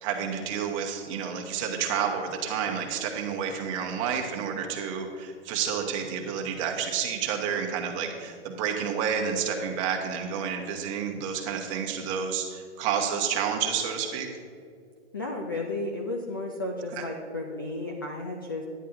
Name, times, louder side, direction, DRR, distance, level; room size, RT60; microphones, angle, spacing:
voice 1, 0.0-14.3 16.9-17.1, right 7 dB, 25° right, 2 dB, 1.2 m, -30 dB
voice 2, 15.1-18.6, left 2 dB, 20° left, 0 dB, 0.3 m, -33 dB
10.0 x 10.0 x 3.9 m, 2.2 s
hypercardioid pair, 150°, 36 cm